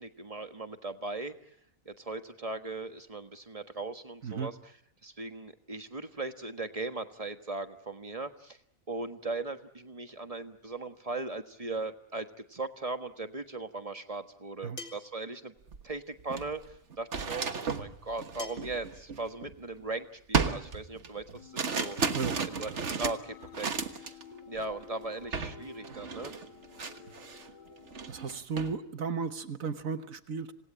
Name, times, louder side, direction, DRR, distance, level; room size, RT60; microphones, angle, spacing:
voice 1, 0.0-1.3 1.8-4.6 5.0-8.6 8.9-15.5 15.8-16.6 17.0-22.0 22.5-22.7 23.0-24.2 24.5-26.3, right 3 dB, 25° right, 8 dB, 1.4 m, -38 dB
sound 1, 13.0-13.1 14.8-15.3 16.8-16.9 18.4-18.8 20.0-20.1 21.8-21.9, left 3 dB, 55° left, 2.7 m, -43 dB
sound 2, 15.7-15.8 16.2-19.8 20.3-24.2 24.5-24.8 25.3-25.6 25.8-27.5 27.9-28.7, right 5 dB, 55° right, 1.7 m, -34 dB
sound 3, 21.3-28.4, left 5 dB, 25° left, 2.5 m, -51 dB
voice 2, 28.1-30.5, right 5 dB, 75° right, 10 dB, 1.7 m, -35 dB
27.0 x 19.0 x 8.8 m, 0.71 s
omnidirectional pair, 1.4 m